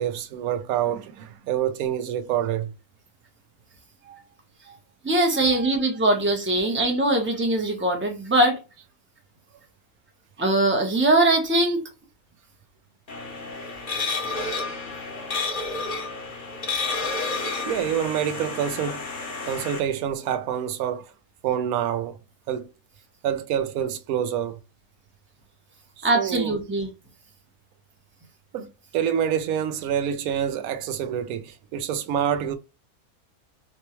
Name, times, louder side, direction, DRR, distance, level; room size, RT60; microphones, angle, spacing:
voice 1, 0.0-2.7 4.0-4.2 4.7-4.8 5.3-5.9 17.6-21.1 21.4-22.2 22.5-22.7 23.2-24.6 26.0-26.7 28.5-32.6, right 9 dB, 70° right, 1.0 m, -27 dB
voice 2, 5.0-8.6 10.4-11.8 26.0-26.9, right 2 dB, 10° right, 0.5 m, -21 dB
sound 1, 13.1-19.8, left 3 dB, 40° left, 0.8 m, -30 dB
4.4 x 2.2 x 3.0 m
omnidirectional pair, 1.7 m